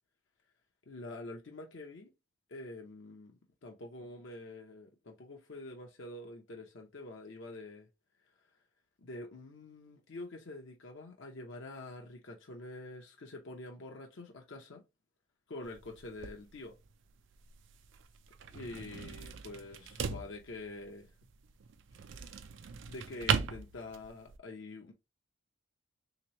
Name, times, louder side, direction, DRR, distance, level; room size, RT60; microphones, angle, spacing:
voice 1, 0.9-2.1 2.5-3.3 3.6-7.9 9.0-14.8 15.5-16.7 18.5-21.1 22.9-24.9, left 2 dB, 60° left, 0.6 m, -46 dB
sound 1, 15.6-24.4, right 6 dB, 60° right, 0.4 m, -39 dB
3.4 x 2.9 x 2.9 m
head